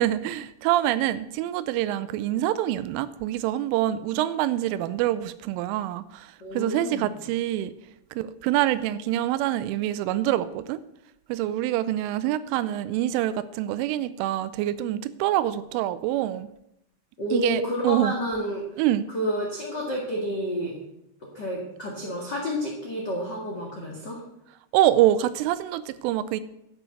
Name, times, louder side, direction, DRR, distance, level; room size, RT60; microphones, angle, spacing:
voice 1, 0.0-7.7 8.2-10.8 11.3-16.5 17.3-18.1 18.8-19.0 24.7-26.4, right 13 dB, 90° right, 14 dB, 3.1 m, -25 dB
voice 2, 6.4-7.1 17.2-18.6 19.1-20.7 21.3-24.2, equal, 70° left, -2 dB, 1.0 m, -29 dB
11.5 x 6.3 x 7.7 m, 0.81 s
omnidirectional pair, 5.6 m